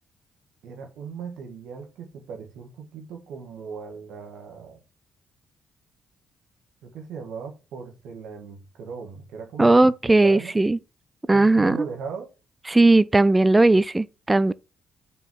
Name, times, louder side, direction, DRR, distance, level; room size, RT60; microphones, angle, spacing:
voice 1, 0.6-4.8 6.8-9.7 10.1-10.7 11.3-12.3, right 5 dB, 80° right, 1.7 m, -38 dB
voice 2, 9.6-10.8 11.3-11.8 12.7-14.5, right 2 dB, 15° right, 0.4 m, -17 dB
5.4 x 4.8 x 5.6 m
cardioid pair, 90°, 0 cm